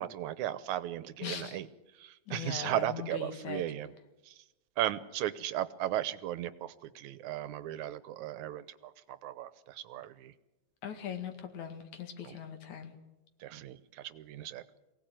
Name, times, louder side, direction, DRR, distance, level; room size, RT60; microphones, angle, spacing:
voice 1, 0.0-1.7 2.0-3.9 4.3-4.4 4.8-10.3 12.2-12.4 13.4-14.6, right 12 dB, 90° right, 15 dB, 2.4 m, -36 dB
voice 2, 1.2-1.6 2.3-3.6 10.8-13.0, left 8 dB, 80° left, 7 dB, 3.4 m, -40 dB
23.0 x 17.5 x 9.1 m, 0.99 s
omnidirectional pair, 3.3 m